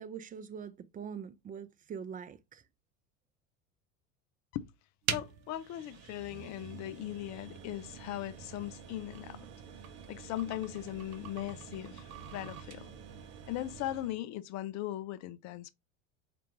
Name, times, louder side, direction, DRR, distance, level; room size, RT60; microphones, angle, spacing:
voice 1, 0.0-2.6, right 7 dB, 20° right, 0.5 m, -43 dB
voice 2, 5.1-9.5 10.1-12.9 13.5-15.7, left 14 dB, 45° left, 0.5 m, -39 dB
sound 1, 5.1-14.2, right 8 dB, 40° right, 0.8 m, -44 dB
4.3 x 2.6 x 3.0 m
hypercardioid pair, 75°, 39 cm